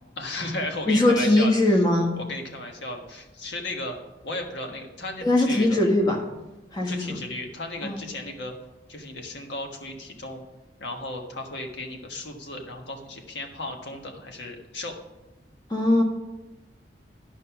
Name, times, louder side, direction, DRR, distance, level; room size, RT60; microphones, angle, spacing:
voice 1, 0.2-1.8 2.2-4.0 4.2-5.8 6.8-8.5 8.9-10.4 10.8-15.0, left 2 dB, 80° left, 3 dB, 1.4 m, -35 dB
voice 2, 0.9-2.2 5.2-6.2 6.7-7.2 7.8-8.0 15.7-16.0, left 1 dB, 20° left, 0 dB, 1.5 m, -21 dB
11.0 x 5.4 x 5.8 m, 1.0 s
head